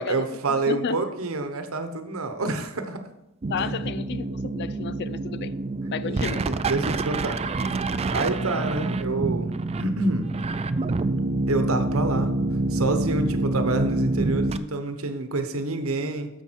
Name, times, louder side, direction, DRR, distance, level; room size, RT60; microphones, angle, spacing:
voice 1, 0.0-3.0 3.6-3.7 6.1-7.4 8.1-10.3 11.5-12.3 12.7-16.3, right 2 dB, 80° right, 1.0 m, -27 dB
voice 2, 0.7-1.0 3.5-5.5 5.9-6.5, left 6 dB, 55° left, 0.4 m, -32 dB
sound 1, 3.4-14.6, right 2 dB, 30° right, 0.4 m, -27 dB
9.9 x 6.9 x 4.6 m
head